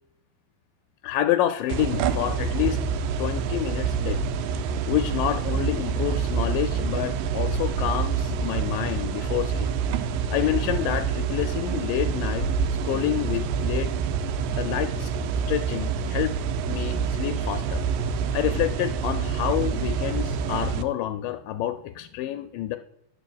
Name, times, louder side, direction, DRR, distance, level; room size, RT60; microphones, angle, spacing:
voice 1, 1.0-2.8 3.2-4.3 4.9-9.7 10.3-12.5 12.8-13.9 14.6-15.1 15.5-16.4 16.7-17.8 18.3-22.8, left 12 dB, 85° left, 9 dB, 2.2 m, -28 dB
sound 1, 1.7-20.8, right 6 dB, 80° right, 2.2 m, -27 dB
10.5 x 4.8 x 7.1 m, 0.76 s
omnidirectional pair, 3.9 m